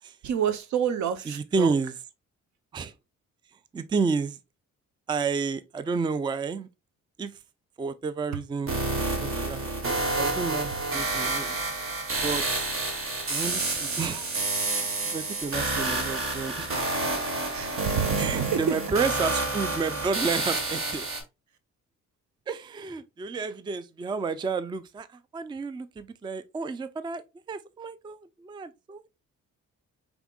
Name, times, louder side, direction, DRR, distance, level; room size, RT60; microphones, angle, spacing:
voice 1, 0.2-1.7 17.5-18.7, right 9 dB, 70° right, 0.7 m, -28 dB
voice 2, 1.3-2.0 2.7-2.9 3.7-4.4 5.1-6.7 7.2-7.3 7.8-8.8 9.3-11.6 12.2-12.7 13.3-14.3 14.7-16.7 18.2-21.1 22.5-27.2 27.5-29.1, right 4 dB, 15° right, 0.3 m, -31 dB
sound 1, 8.7-21.2, right 2 dB, 45° right, 1.5 m, -29 dB
4.9 x 3.5 x 2.3 m
cardioid pair, 90°, 30 cm